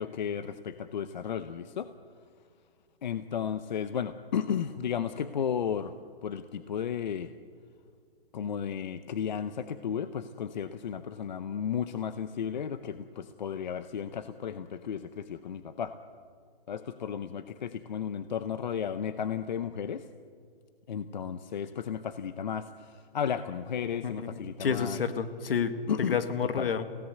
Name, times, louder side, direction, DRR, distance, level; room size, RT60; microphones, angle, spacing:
voice 1, 0.0-1.9 3.0-5.9 6.2-7.3 8.3-15.9 16.7-20.0 20.9-25.0 25.9-26.2 26.6-26.7, left 8 dB, 50° left, 11 dB, 0.8 m, -34 dB
voice 2, 24.0-25.7 26.1-26.8, left 6 dB, 70° left, 10 dB, 1.9 m, -30 dB
27.0 x 17.0 x 7.9 m, 2.1 s
hypercardioid pair, 175°, 30 cm